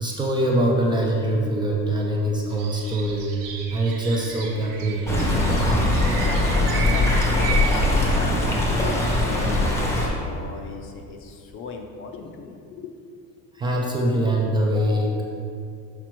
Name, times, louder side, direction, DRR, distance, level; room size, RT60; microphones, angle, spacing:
voice 1, 0.0-3.3 3.7-5.3 7.5-7.7 13.5-15.2, right 1 dB, 15° right, -2 dB, 0.4 m, -23 dB
sound 1, 2.5-8.1, right 5 dB, 70° right, 1.0 m, -34 dB
Stream, 5.1-10.1, left 1 dB, 10° left, 0.8 m, -21 dB
voice 2, 6.1-12.9, left 4 dB, 40° left, 4 dB, 0.6 m, -39 dB
5.9 x 5.0 x 4.5 m, 2.5 s
cardioid pair, 175°, 32 cm